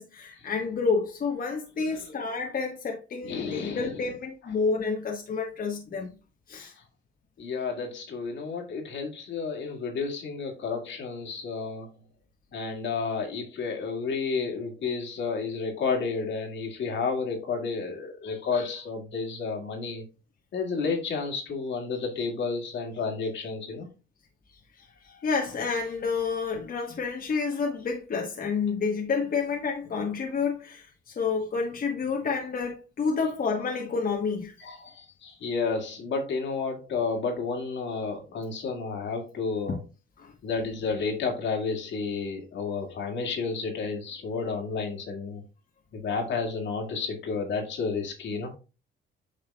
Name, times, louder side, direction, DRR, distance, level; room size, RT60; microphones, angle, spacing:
voice 1, 0.0-6.1 6.5-6.7 24.8-34.5 39.7-39.8 40.2-40.3, left 5 dB, 45° left, 1.2 m, -29 dB
voice 2, 3.2-4.1 4.4-4.5 6.6-6.7 7.4-11.9 12.5-20.0 20.5-23.9 27.5-27.6 33.2-33.3 34.6-39.8 40.4-45.4 45.9-48.5, left 4 dB, 70° left, 2.1 m, -31 dB
9.0 x 5.1 x 2.3 m
cardioid pair, 90°, 20 cm